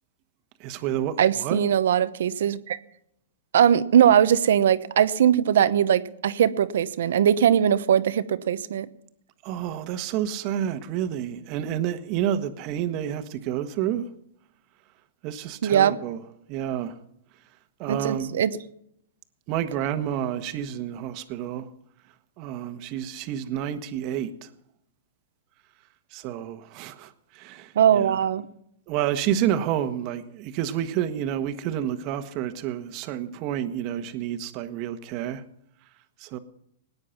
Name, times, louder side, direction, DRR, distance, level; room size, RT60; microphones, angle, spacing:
voice 1, 0.6-1.6 9.4-14.1 15.2-16.2 16.5-16.9 17.8-18.4 19.5-21.7 22.4-24.5 26.1-28.2 28.9-35.4 36.2-36.4, right 10 dB, 40° right, 1.4 m, -29 dB
voice 2, 1.2-2.8 3.5-8.9 15.6-15.9 17.9-18.5 27.7-28.5, right 9 dB, 75° right, 1.0 m, -20 dB
19.0 x 9.7 x 5.9 m
hypercardioid pair, 145°, 0 cm